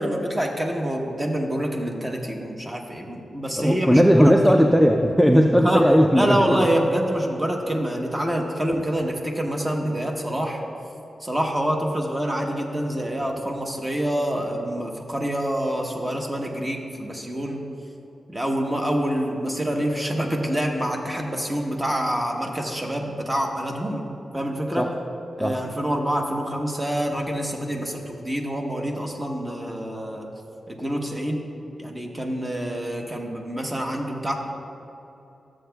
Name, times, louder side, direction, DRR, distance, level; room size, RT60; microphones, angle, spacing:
voice 1, 0.0-4.1 4.5-4.6 5.6-5.9 6.2-10.6 11.2-17.6 18.3-24.1 24.3-24.9 25.4-30.3 30.7-31.4 31.8-34.4, equal, 20° right, 1 dB, 1.0 m, -26 dB
voice 2, 3.6-6.7 24.8-24.9 25.4-25.6, equal, ahead, 3 dB, 0.4 m, -17 dB
12.5 x 7.6 x 2.3 m, 2.9 s
cardioid pair, 90°, 0 cm